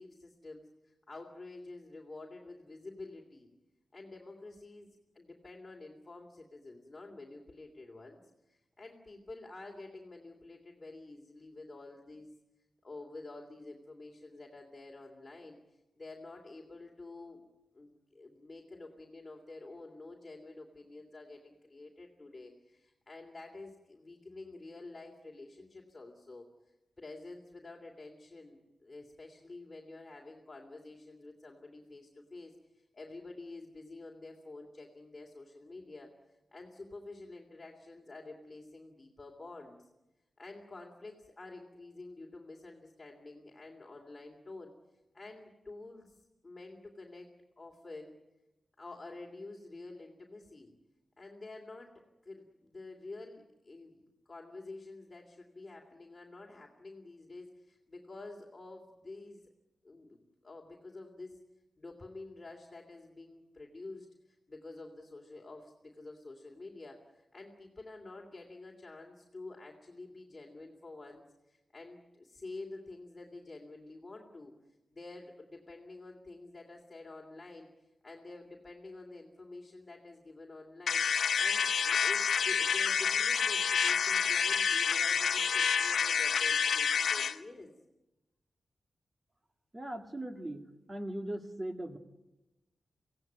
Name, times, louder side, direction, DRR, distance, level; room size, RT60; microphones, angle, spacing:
voice 1, 0.0-3.5 3.9-8.2 8.5-12.3 12.8-17.4 17.7-26.5 27.0-36.1 36.5-39.9 40.4-44.7 45.1-46.1 46.4-47.3 47.6-48.1 48.8-50.7 51.2-51.9 52.2-59.5 59.8-61.4 61.8-74.5 74.9-81.0 81.4-87.7, left 2 dB, 20° left, -1 dB, 2.9 m, -49 dB
sound 1, 80.9-87.4, left 7 dB, 90° left, 1.1 m, -28 dB
voice 2, 89.7-90.6 90.9-92.0, right 1 dB, 20° right, 5 dB, 2.0 m, -39 dB
26.0 x 17.0 x 9.3 m, 1.0 s
wide cardioid pair, 150°, 0 cm